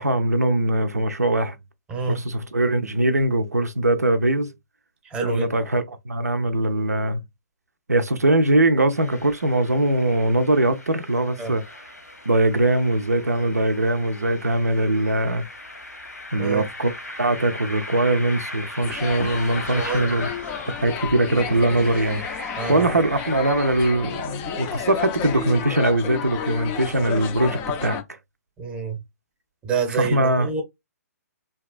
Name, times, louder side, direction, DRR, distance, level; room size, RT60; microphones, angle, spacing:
voice 1, 0.0-1.6 2.1-4.5 5.2-7.2 7.9-11.8 12.3-15.4 16.3-20.3 20.8-22.2 22.7-28.0 29.9-30.5, right 1 dB, 80° right, 0.4 m, -21 dB
voice 2, 1.9-2.2 5.0-5.6 11.4-11.6 16.4-16.6 19.7-20.0 22.6-22.9 28.6-29.0 29.6-30.6, right 5 dB, 10° right, 0.7 m, -27 dB
sound 1, 8.9-23.9, left 1 dB, 85° left, 1.1 m, -38 dB
sound 2, 18.8-28.0, left 7 dB, 20° left, 0.4 m, -32 dB
2.8 x 2.2 x 2.4 m
figure-of-eight pair, 125°, 9 cm